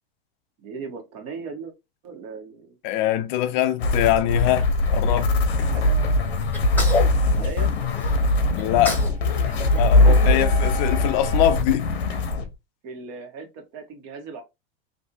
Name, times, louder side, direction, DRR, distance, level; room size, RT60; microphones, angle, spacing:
voice 1, 0.6-1.7 2.0-2.8 5.7-5.9 6.8-7.7 10.1-10.7 11.7-11.8 12.1-12.2 12.8-14.4, right 5 dB, 50° right, 1.5 m, -38 dB
voice 2, 2.8-5.3 8.6-9.0 9.8-11.9, left 13 dB, 50° left, 0.5 m, -23 dB
sound 1, 3.8-12.5, left 2 dB, 85° left, 1.0 m, -21 dB
Sneeze, 6.5-8.1 8.6-9.2 9.5-10.9, left 3 dB, 5° left, 1.0 m, -30 dB
sound 2, 9.1-11.6, left 2 dB, 25° right, 1.3 m, -38 dB
3.3 x 2.7 x 2.8 m
hypercardioid pair, 110°, 31 cm